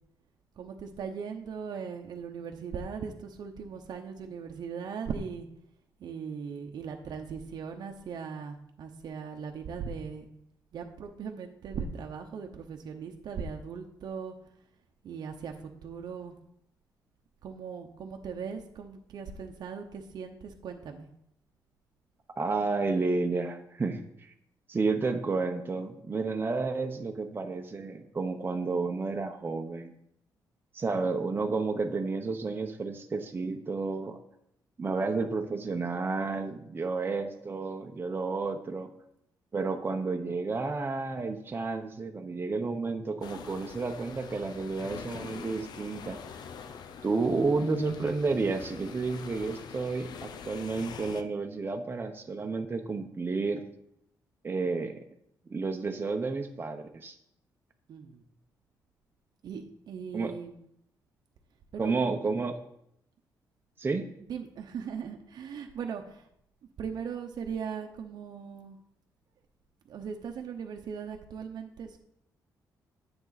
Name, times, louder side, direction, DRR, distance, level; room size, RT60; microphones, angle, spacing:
voice 1, 0.6-5.5 6.0-10.2 10.7-14.3 15.0-16.3 17.4-21.1 57.9-58.2 59.4-60.6 61.7-61.9 64.2-66.3 66.8-68.8 69.9-72.0, right 6 dB, 70° right, 3 dB, 0.9 m, -39 dB
voice 2, 22.4-24.3 24.7-29.9 30.7-34.2 34.8-38.9 39.5-46.2 47.0-53.6 54.4-55.0 55.5-57.1 60.1-60.3 61.8-62.6 63.8-64.0, right 3 dB, 30° right, 4 dB, 0.9 m, -31 dB
sound 1, 43.2-51.2, left 6 dB, 70° left, 0.7 m, -44 dB
10.0 x 7.8 x 4.1 m, 0.75 s
cardioid pair, 95°, 7 cm